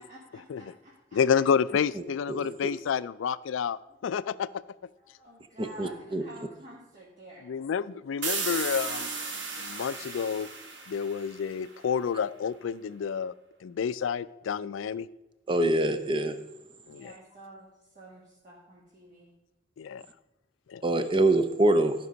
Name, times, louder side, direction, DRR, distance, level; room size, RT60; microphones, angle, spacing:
voice 1, 0.0-1.4 5.2-7.5 16.9-17.7 17.9-19.3, right 1 dB, 45° right, -6 dB, 1.7 m, -50 dB
voice 2, 1.1-4.5 7.4-9.1 9.6-10.5 10.9-13.3 13.6-15.1 16.9-17.1 19.8-20.0 20.7-20.8, left 7 dB, 90° left, 17 dB, 0.3 m, -29 dB
voice 3, 5.6-6.2 15.5-16.3 20.8-21.9, right 1 dB, 25° right, 9 dB, 0.6 m, -24 dB
sound 1, 8.2-11.8, right 4 dB, 70° right, 1.5 m, -35 dB
12.5 x 5.3 x 5.1 m, 1.0 s
head